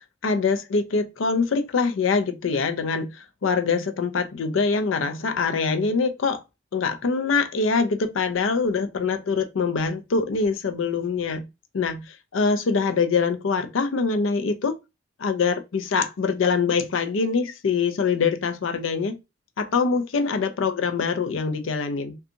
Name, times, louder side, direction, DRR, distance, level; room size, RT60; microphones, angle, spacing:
voice 1, 0.2-6.4 6.7-11.5 11.7-14.8 15.2-19.2 19.6-22.2, left 4 dB, 90° left, 0.5 m, -24 dB
2.7 x 2.3 x 2.5 m
head